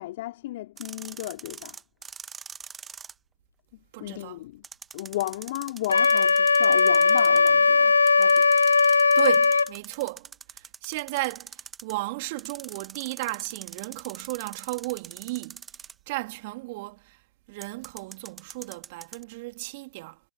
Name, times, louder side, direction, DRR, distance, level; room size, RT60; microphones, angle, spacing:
voice 1, 0.0-1.8 4.0-4.6 4.9-8.4, left 16 dB, 40° left, 4.7 m, -34 dB
sound 1, 0.8-3.1 4.6-7.5 8.1-11.9 12.4-16.1 17.6-19.2, right 6 dB, 10° right, 1.5 m, -43 dB
voice 2, 3.9-4.4 9.1-10.3 10.6-15.6 16.1-17.2 17.5-20.2, right 23 dB, 35° right, 3.2 m, -34 dB
Wind instrument woodwind instrument, 5.9-9.7, left 4 dB, 75° left, 0.5 m, -19 dB
figure-of-eight pair, 125°, 0 cm